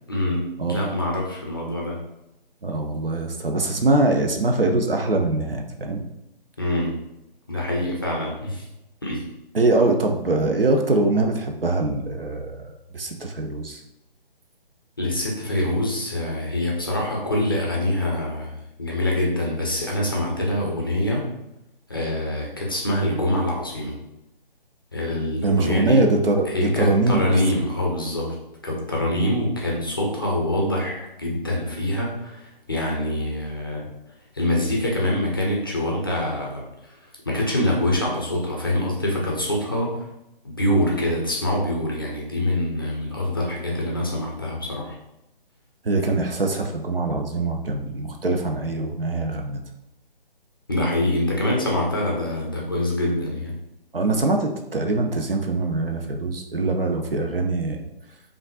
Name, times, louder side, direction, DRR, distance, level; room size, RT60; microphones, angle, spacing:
voice 1, 0.1-0.4 0.7-2.0 6.6-6.9 7.5-8.6 9.0-9.2 15.0-18.5 18.8-21.3 21.9-24.0 24.9-26.0 26.5-28.3 28.6-33.9 34.3-37.0 37.3-40.0 40.4-45.0 50.7-53.5, left 1 dB, 25° left, -2 dB, 0.5 m, -25 dB
voice 2, 2.6-6.1 9.5-13.8 25.4-27.3 29.1-29.3 45.8-49.6 53.9-57.9, right 2 dB, 75° right, 3 dB, 0.7 m, -23 dB
5.1 x 2.5 x 2.4 m, 0.89 s
figure-of-eight pair, 145°, 29 cm